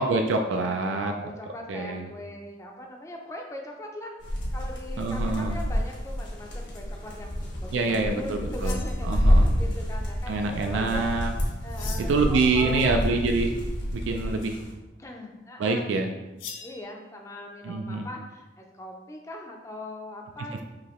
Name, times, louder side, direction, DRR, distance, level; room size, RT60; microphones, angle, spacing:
voice 1, 0.0-1.3 1.7-2.1 5.0-5.6 7.7-9.5 10.3-11.3 12.0-13.5 13.9-14.6 15.6-16.1 17.6-18.1, right 3 dB, 85° right, 4 dB, 0.3 m, -26 dB
voice 2, 0.5-4.2 4.5-11.1 11.6-13.1 15.0-15.9 16.6-20.6, left 1 dB, 15° left, 1 dB, 0.4 m, -40 dB
sound 1, 4.2-14.7, equal, 70° left, 1.1 m, -28 dB
sound 2, 8.5-9.5 11.7-12.3 16.4-16.8, left 6 dB, 90° left, 0.6 m, -42 dB
4.9 x 2.8 x 3.0 m, 1.1 s
head